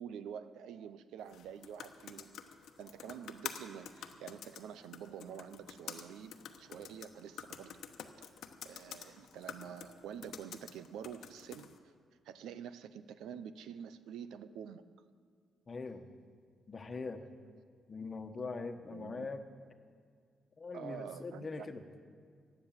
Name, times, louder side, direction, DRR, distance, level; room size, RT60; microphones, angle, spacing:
voice 1, 0.0-2.3 2.8-7.8 8.2-8.3 8.6-11.7 12.2-14.8 18.9-19.3 20.7-21.7, right 8 dB, 85° right, 13 dB, 0.6 m, -47 dB
sound 1, 1.2-11.8, left 8 dB, 75° left, 1.0 m, -49 dB
voice 2, 15.7-16.1 16.7-17.2 17.9-19.4 20.6-21.8, left 4 dB, 35° left, 7 dB, 1.2 m, -42 dB
15.5 x 9.6 x 7.3 m, 2.2 s
cardioid pair, 90°, 0 cm